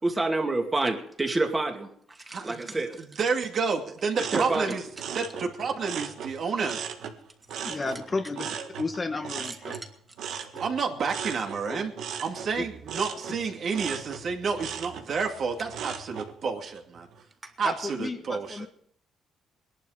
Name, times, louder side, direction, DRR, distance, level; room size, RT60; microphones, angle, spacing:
voice 1, 0.0-3.0 4.2-4.8, right 2 dB, 20° right, 4 dB, 2.4 m, -28 dB
voice 2, 2.3-2.7 3.2-4.8 5.1-6.9 10.6-11.9 12.2-17.1 17.6-18.7, right 5 dB, 50° right, 3 dB, 2.4 m, -30 dB
sound 1, 4.1-7.2 7.5-16.3 16.8-17.2, right 7 dB, 75° right, 1.6 m, -38 dB
voice 3, 7.6-8.5 8.8-9.7 11.7-11.9 12.6-12.7 17.6-18.7, left 3 dB, 25° left, 7 dB, 1.3 m, -32 dB
20.5 x 11.5 x 5.1 m, 0.64 s
cardioid pair, 115°, 0 cm